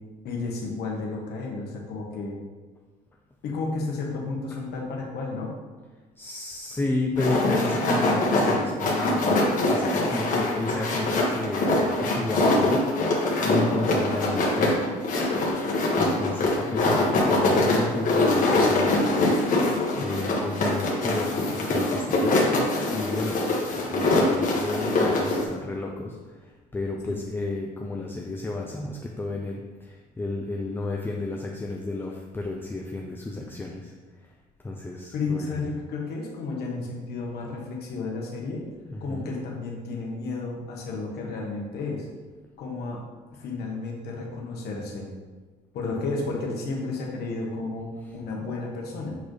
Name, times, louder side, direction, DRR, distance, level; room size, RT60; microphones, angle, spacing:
voice 1, 0.2-2.4 3.4-5.5 20.0-20.2 27.0-27.2 35.1-38.6 39.0-42.1 42.6-43.0 43.4-45.1 45.7-49.2, left 3 dB, 70° left, -1 dB, 1.2 m, -32 dB
voice 2, 6.2-13.2 13.5-14.9 16.0-19.4 20.0-23.4 23.7-33.9 34.6-35.5 38.8-39.3 46.0-46.1, left 2 dB, 10° left, 0 dB, 0.5 m, -32 dB
sound 1, 7.2-25.4, left 2 dB, 50° left, 1.4 m, -23 dB
7.0 x 4.1 x 3.2 m, 1.3 s
cardioid pair, 110°, 17 cm